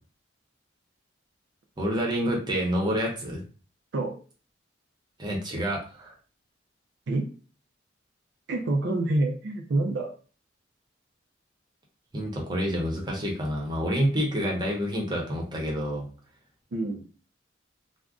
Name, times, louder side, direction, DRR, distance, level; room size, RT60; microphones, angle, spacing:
voice 1, 1.8-3.4 5.2-6.1 12.1-16.1, equal, 25° right, -1 dB, 0.7 m, -28 dB
voice 2, 8.5-10.1 16.7-17.0, right 2 dB, 65° right, 2 dB, 0.4 m, -27 dB
2.4 x 2.1 x 3.5 m, 0.38 s
head